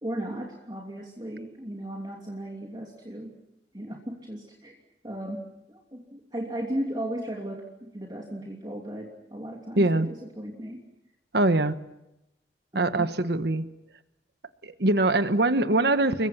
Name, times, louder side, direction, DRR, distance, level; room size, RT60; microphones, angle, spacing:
voice 1, 0.0-3.3 3.7-4.8 5.0-10.8 12.7-13.1, right 1 dB, 25° right, -1 dB, 3.0 m, -36 dB
voice 2, 9.8-10.1 11.3-11.8 12.7-13.6 14.6-16.3, right 2 dB, 65° right, 10 dB, 1.4 m, -23 dB
29.5 x 23.0 x 5.9 m, 0.88 s
head